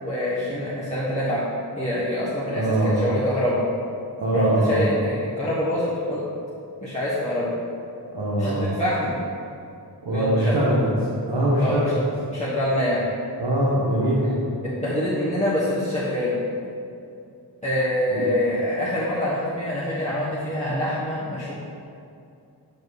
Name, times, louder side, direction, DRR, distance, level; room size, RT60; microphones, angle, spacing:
voice 1, 0.0-1.4 1.8-3.6 4.3-6.2 6.8-7.5 8.4-9.2 10.1-10.6 11.6-11.9 12.3-13.1 14.6-16.4 17.6-21.5, left 1 dB, 15° left, -11 dB, 1.4 m, -25 dB
voice 2, 2.5-2.9 4.2-4.9 8.1-8.7 10.0-10.8 11.3-12.0 13.4-14.3 18.1-18.2, right 1 dB, 75° right, -8 dB, 1.4 m, -22 dB
7.8 x 5.0 x 4.0 m, 2.6 s
wide cardioid pair, 70°, 41 cm